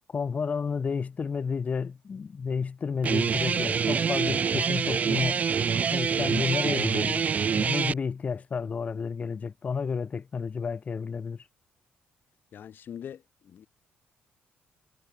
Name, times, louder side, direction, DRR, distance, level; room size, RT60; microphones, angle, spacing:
voice 1, 0.1-5.5 5.9-11.4, left 5 dB, 35° left, 1.5 m, -31 dB
Guitar, 3.0-7.9, right 6 dB, 40° right, 0.4 m, -26 dB
voice 2, 12.5-13.7, left 9 dB, 55° left, 1.3 m, -43 dB
cardioid pair, 105°, 4 cm